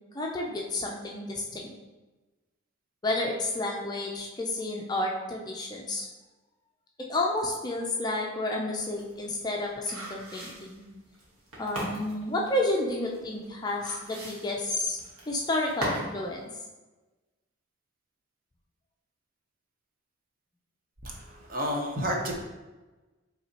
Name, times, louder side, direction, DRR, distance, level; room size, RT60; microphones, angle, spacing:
voice 1, 0.1-1.7 3.0-6.1 7.1-10.8 11.6-15.0 15.3-16.5, left 2 dB, 20° left, -1 dB, 0.4 m, -31 dB
sound 1, 8.8-16.2 16.5-16.6, equal, 80° right, 1.3 m, -38 dB
voice 2, 21.0-22.3, equal, 40° right, 0 dB, 0.7 m, -31 dB
5.7 x 3.3 x 2.8 m, 1.2 s
head